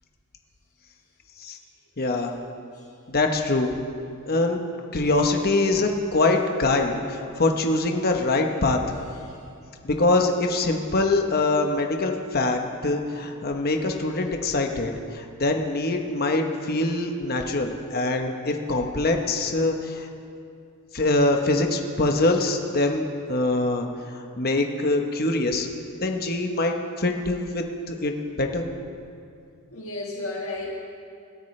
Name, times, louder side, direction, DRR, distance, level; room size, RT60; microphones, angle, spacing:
voice 1, 2.0-2.3 3.1-3.7 4.3-4.6 4.9-8.8 9.8-20.1 20.9-25.7 26.0-28.6, left 2 dB, 45° left, 3 dB, 1.0 m, -24 dB
voice 2, 29.7-30.7, left 2 dB, 65° left, -3 dB, 1.6 m, -33 dB
25.5 x 13.5 x 3.3 m, 2.5 s
head